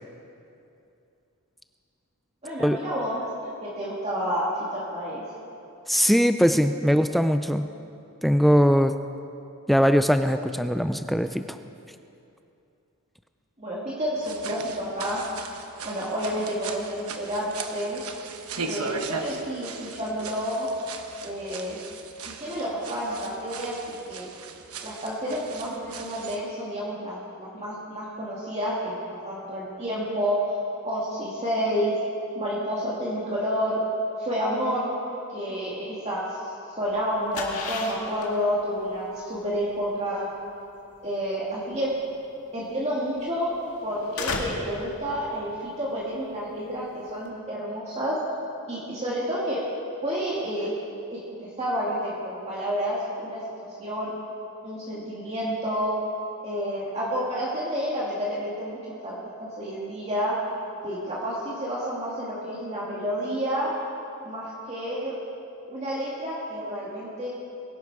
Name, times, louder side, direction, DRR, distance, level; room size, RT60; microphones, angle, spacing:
voice 1, 2.4-5.2 13.6-15.2 15.8-18.0 18.6-20.7 21.2-21.8 22.2-23.8 24.1-24.3 24.8-30.6 30.8-32.0 32.4-33.8 34.2-34.9 35.3-36.4 36.8-40.3 41.0-41.9 42.5-43.5 43.8-48.2 48.7-49.6 50.0-50.7 51.1-54.1 54.6-55.9 56.4-60.4 60.8-63.7 64.2-65.1 65.7-67.3, equal, 30° right, -7 dB, 2.1 m, -30 dB
voice 2, 5.9-7.7 8.2-8.9 9.7-11.6, equal, ahead, 9 dB, 0.3 m, -21 dB
sound 1, 14.2-26.4, right 4 dB, 75° right, 1.1 m, -38 dB
sound 2, 36.9-47.3, left 3 dB, 75° left, 1.9 m, -37 dB
22.0 x 11.5 x 4.8 m, 2.7 s
head